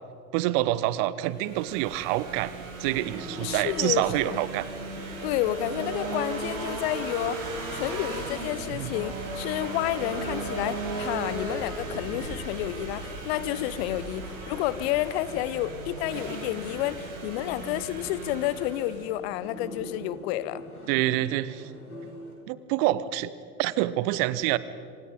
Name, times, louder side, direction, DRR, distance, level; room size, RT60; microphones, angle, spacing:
voice 1, 0.3-2.5 2.8-4.7 8.7-8.9 20.9-21.6 22.5-23.3 23.6-24.6, right 15 dB, 40° right, 17 dB, 1.0 m, -26 dB
sound 1, 1.3-19.1, right 3 dB, 65° right, 7.3 m, -36 dB
sound 2, 2.8-22.4, equal, 85° left, 4.5 m, -46 dB
voice 2, 3.4-4.4 5.2-20.6, left 14 dB, 45° left, 17 dB, 1.0 m, -30 dB
27.0 x 25.5 x 5.2 m, 2.4 s
figure-of-eight pair, 85°, 43 cm